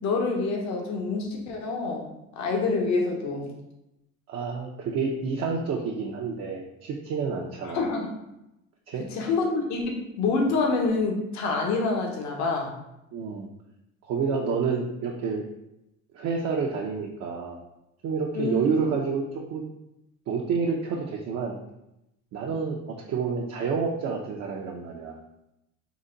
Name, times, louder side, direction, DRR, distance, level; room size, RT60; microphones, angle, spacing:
voice 1, 0.0-3.5 7.6-8.1 9.1-12.7 18.3-18.7, left 3 dB, 65° left, 1 dB, 0.8 m, -27 dB
voice 2, 4.3-7.8 8.9-9.1 13.1-13.5 14.0-15.4 16.1-17.6 18.0-19.6 20.3-21.6 22.3-25.2, right 5 dB, 55° right, -1 dB, 0.5 m, -29 dB
3.9 x 2.2 x 3.8 m, 0.88 s
cardioid pair, 120°, 31 cm